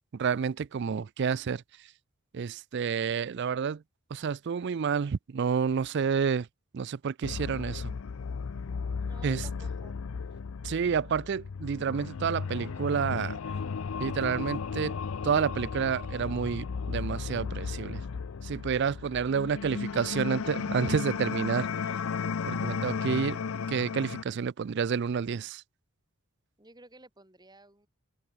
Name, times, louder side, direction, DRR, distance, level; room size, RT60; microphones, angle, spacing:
voice 1, 0.1-1.6 2.3-3.8 4.1-6.5 6.7-7.9 9.2-9.4 10.6-13.4 14.0-15.0 15.2-18.0 18.4-21.7 22.4-23.4 23.7-25.6, right 6 dB, 55° right, 0.4 m, -29 dB
sound 1, 7.2-24.2, left 5 dB, 75° left, 0.5 m, -35 dB
voice 2, 9.0-10.0 19.9-20.3 26.6-27.9, right 2 dB, 20° right, 4.4 m, -54 dB
open air
head